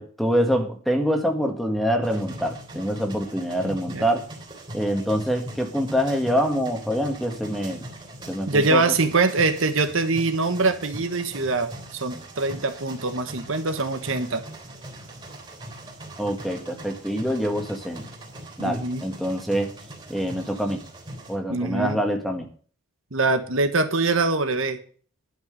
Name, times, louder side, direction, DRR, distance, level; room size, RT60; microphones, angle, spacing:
voice 1, 0.0-4.3 4.7-7.8 8.3-8.8 16.2-18.0 18.6-19.7 20.1-20.8 21.3-22.5, equal, ahead, 4 dB, 1.7 m, -25 dB
sound 1, 2.0-21.4, right 1 dB, 20° right, 3.1 m, -41 dB
voice 2, 3.6-4.0 8.5-14.4 18.6-19.0 21.5-22.0 23.1-24.8, right 3 dB, 65° right, 8 dB, 1.3 m, -23 dB
11.0 x 6.2 x 7.9 m, 0.42 s
head